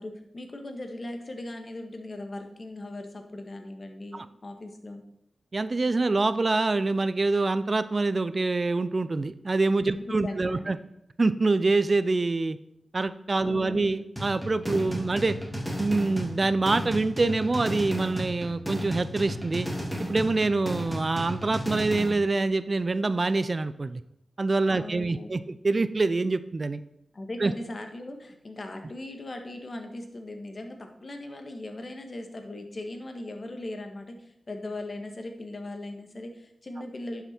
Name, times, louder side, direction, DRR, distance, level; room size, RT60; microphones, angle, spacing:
voice 1, 0.0-5.0 9.9-10.7 13.4-13.9 14.8-15.1 24.7-25.4 27.1-37.2, left 1 dB, 50° left, 5 dB, 1.6 m, -39 dB
voice 2, 5.5-10.8 11.2-12.6 12.9-15.4 15.8-19.7 20.0-24.0 24.4-26.8 27.4-27.5, right 3 dB, 45° right, 14 dB, 0.5 m, -25 dB
sound 1, 14.2-22.2, equal, ahead, 2.7 m, -34 dB
11.0 x 5.8 x 4.5 m, 0.77 s
cardioid pair, 55°, 0 cm